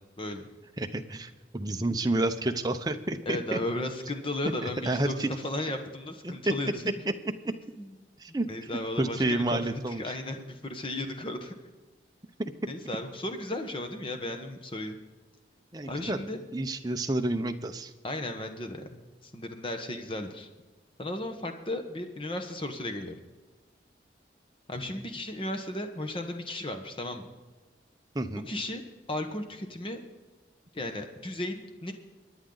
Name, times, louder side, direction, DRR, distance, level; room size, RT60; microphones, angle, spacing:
voice 1, 0.8-3.6 4.6-5.3 6.2-6.3 8.2-8.5 9.0-10.1 12.4-12.7 15.7-16.2 16.5-17.9 28.1-28.5, right 2 dB, 20° right, 6 dB, 0.7 m, -30 dB
voice 2, 3.3-6.8 7.8-7.9 8.5-11.5 12.7-15.0 15.9-16.4 18.0-20.5 21.0-23.1 24.7-27.3 28.5-28.8 29.1-30.0 30.7-31.9, left 1 dB, 30° left, 6 dB, 1.1 m, -35 dB
24.0 x 10.0 x 3.9 m, 1.3 s
head